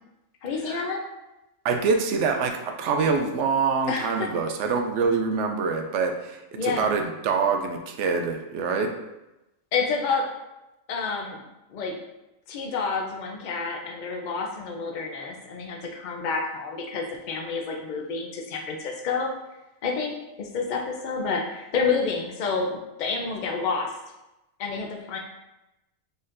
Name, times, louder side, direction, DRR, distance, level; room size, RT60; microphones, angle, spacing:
voice 1, 0.4-1.1 3.9-4.3 6.6-7.0 9.7-10.2 10.9-11.4 11.7-12.0 12.5-19.3 19.8-24.0 24.6-25.2, left 4 dB, 50° left, 1 dB, 0.5 m, -29 dB
voice 2, 1.6-8.9, right 5 dB, 65° right, 5 dB, 0.8 m, -25 dB
4.2 x 3.9 x 2.5 m, 0.97 s
omnidirectional pair, 1.4 m